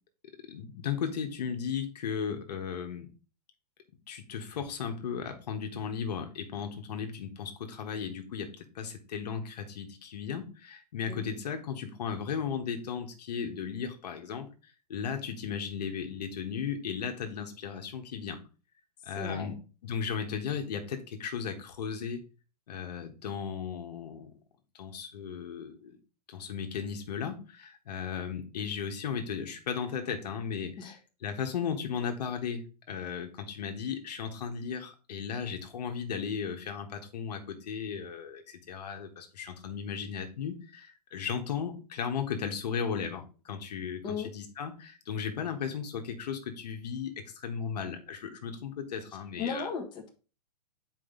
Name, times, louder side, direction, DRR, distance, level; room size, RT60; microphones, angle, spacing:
voice 1, 0.5-3.1 4.1-14.5 14.9-18.4 19.0-22.2 22.7-24.3 24.7-26.0 26.3-49.7, left 7 dB, 75° left, 4 dB, 1.4 m, -36 dB
voice 2, 19.2-19.5 30.8-30.9 44.0-44.3 49.4-50.1, left 6 dB, 20° left, 1 dB, 1.4 m, -36 dB
7.7 x 4.8 x 3.9 m, 0.34 s
hypercardioid pair, 145°, 21 cm